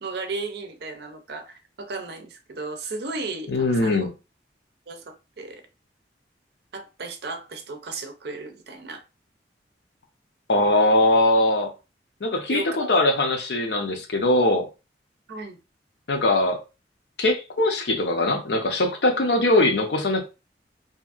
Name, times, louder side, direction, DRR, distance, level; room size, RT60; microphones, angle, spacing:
voice 1, 0.0-4.1 4.9-5.6 6.7-9.0 12.5-12.9 15.3-15.6, right 3 dB, 65° right, 0.5 m, -35 dB
voice 2, 3.5-4.1 10.5-11.7 12.2-14.7 16.1-16.6 17.2-20.2, left 2 dB, 70° left, 0.6 m, -21 dB
2.7 x 2.5 x 2.4 m
head